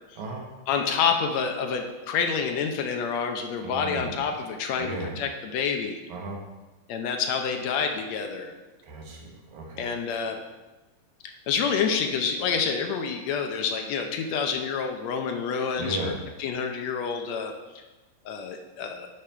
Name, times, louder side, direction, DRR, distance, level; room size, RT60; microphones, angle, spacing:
voice 1, 0.2-0.5 3.6-4.3 4.8-5.2 6.1-6.4 8.8-9.9 15.8-16.2, right 2 dB, 85° right, 0 dB, 2.7 m, -35 dB
voice 2, 0.7-6.0 6.9-8.5 9.8-10.4 11.5-16.1 16.4-17.5 18.3-19.1, left 6 dB, 75° left, 4 dB, 1.8 m, -28 dB
9.9 x 5.3 x 4.4 m, 1.1 s
omnidirectional pair, 3.3 m